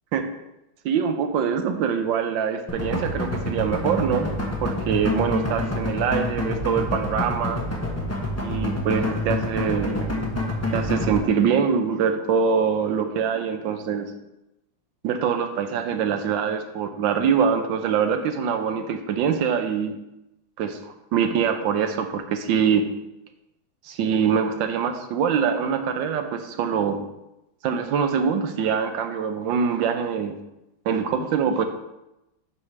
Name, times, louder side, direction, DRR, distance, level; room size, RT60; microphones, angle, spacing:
voice 1, 0.8-4.3 4.6-7.6 8.4-10.3 10.7-14.1 15.0-20.0 20.6-22.8 23.8-27.1 27.6-30.4 30.8-31.6, right 7 dB, 75° right, 7 dB, 1.4 m, -24 dB
sound 1, 2.7-11.2, left 1 dB, 15° left, 0.6 m, -27 dB
5.4 x 4.8 x 5.9 m, 0.91 s
omnidirectional pair, 2.2 m